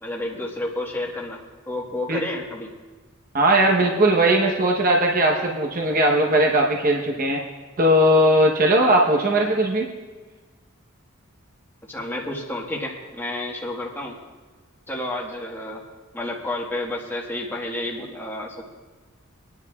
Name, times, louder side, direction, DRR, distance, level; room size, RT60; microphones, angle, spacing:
voice 1, 0.0-1.4 1.7-2.7 11.9-14.2 14.9-15.8 16.1-18.6, left 1 dB, 10° left, -2 dB, 1.4 m, -30 dB
voice 2, 3.3-7.4 7.8-9.8, right 1 dB, 40° right, 0 dB, 0.9 m, -18 dB
24.5 x 10.5 x 2.3 m, 1.4 s
head